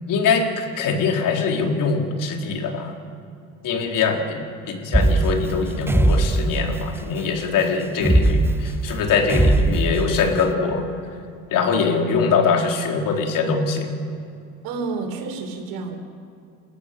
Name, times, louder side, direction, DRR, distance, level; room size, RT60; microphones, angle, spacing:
voice 1, 0.1-3.0 3.6-10.9 11.5-14.0, left 5 dB, 55° left, 2 dB, 4.1 m, -22 dB
sound 1, 4.9-7.1 8.0-10.4, right 2 dB, 5° right, 1.2 m, -20 dB
voice 2, 14.6-16.0, right 4 dB, 65° right, 2 dB, 5.4 m, -29 dB
30.0 x 14.5 x 6.9 m, 2.5 s
hypercardioid pair, 70°, 39 cm